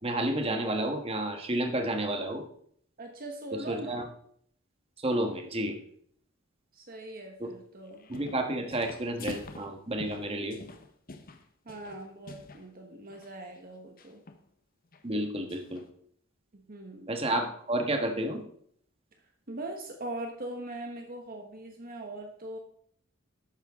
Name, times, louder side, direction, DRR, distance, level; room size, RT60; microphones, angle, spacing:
voice 1, 0.0-2.4 3.7-4.0 5.0-5.8 7.4-7.5 8.1-10.6 15.0-15.8 17.1-18.4, right 1 dB, 30° right, 4 dB, 1.4 m, -30 dB
voice 2, 3.0-4.0 6.7-8.1 11.6-14.2 16.5-17.1 19.5-22.6, right 1 dB, 45° right, 3 dB, 1.2 m, -41 dB
sound 1, 7.9-8.5 8.7-12.7 13.0-13.3 14.0-14.4 14.9-15.0 15.5-15.9, left 2 dB, 45° left, 0.9 m, -46 dB
12.0 x 9.0 x 3.7 m, 0.63 s
head